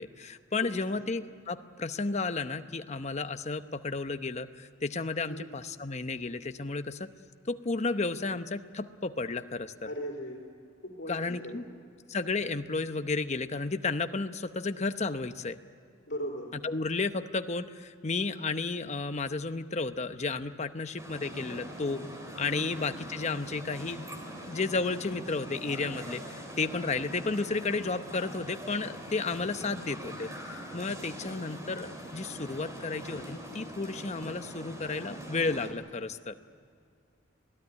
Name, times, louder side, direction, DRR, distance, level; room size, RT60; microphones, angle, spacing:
voice 1, 0.0-7.1 7.5-9.9 11.1-11.6 12.1-15.6 16.6-22.0 22.4-24.1 24.5-36.3, left 3 dB, 35° left, 9 dB, 0.9 m, -33 dB
voice 2, 0.6-1.0 5.3-5.5 9.8-10.4 10.8-11.7 16.1-16.5 22.6-22.9 31.0-31.4, equal, 60° left, 0 dB, 3.4 m, -39 dB
sound 1, 21.0-35.7, equal, 15° right, 3.7 m, -43 dB
26.5 x 18.0 x 9.7 m, 2.3 s
head